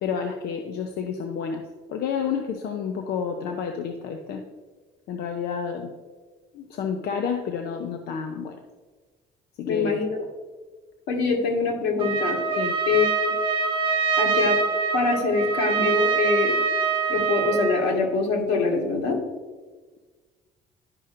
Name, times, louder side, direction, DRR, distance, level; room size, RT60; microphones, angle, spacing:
voice 1, 0.0-1.6 1.9-4.4 5.1-5.9 6.5-8.6 9.6-10.0 12.6-12.8, left 6 dB, 70° left, 4 dB, 0.7 m, -30 dB
voice 2, 9.7-10.1 11.1-12.4 12.9-13.3 14.2-14.6 14.9-16.6 17.1-19.2, left 4 dB, 90° left, 1 dB, 1.6 m, -24 dB
Trumpet, 12.0-17.9, right 5 dB, 30° right, 1.2 m, -24 dB
11.5 x 5.4 x 2.5 m, 1.4 s
cardioid pair, 110°, 17 cm